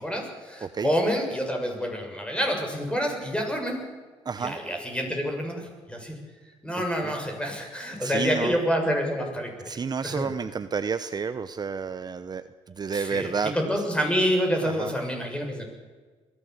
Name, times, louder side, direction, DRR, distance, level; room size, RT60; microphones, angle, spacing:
voice 1, 0.0-3.8 4.4-6.2 6.6-9.8 10.0-10.3 12.9-15.7, equal, 10° left, 3 dB, 6.9 m, -28 dB
voice 2, 4.2-4.6 7.0-7.1 8.0-8.6 9.7-13.5 14.6-14.9, right 6 dB, 35° right, 11 dB, 0.9 m, -30 dB
22.0 x 16.0 x 8.2 m, 1.4 s
supercardioid pair, 75°, 11 cm